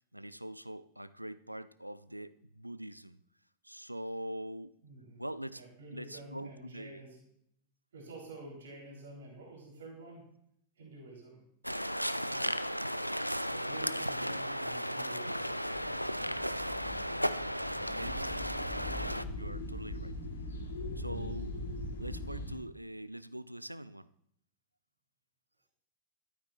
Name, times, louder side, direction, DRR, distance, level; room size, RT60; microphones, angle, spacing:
voice 1, 0.0-3.2 3.6-4.7 5.2-5.6 5.9-7.0 12.4-12.6 14.2-14.4 17.9-18.5 19.0-20.2 21.0-21.6 22.0-24.1, right 1 dB, 90° right, 16 dB, 0.4 m, -43 dB
voice 2, 4.8-5.2 5.5-7.2 7.9-10.3 10.8-11.4 12.3-12.5 13.5-15.6, right 2 dB, 65° right, -2 dB, 3.7 m, -49 dB
sound 1, 11.6-19.2, equal, 90° left, 0.3 m, -35 dB
sound 2, 15.4-22.6, left 1 dB, 70° left, 1.6 m, -41 dB
13.0 x 12.0 x 2.5 m, 0.72 s
figure-of-eight pair, 90°, 0 cm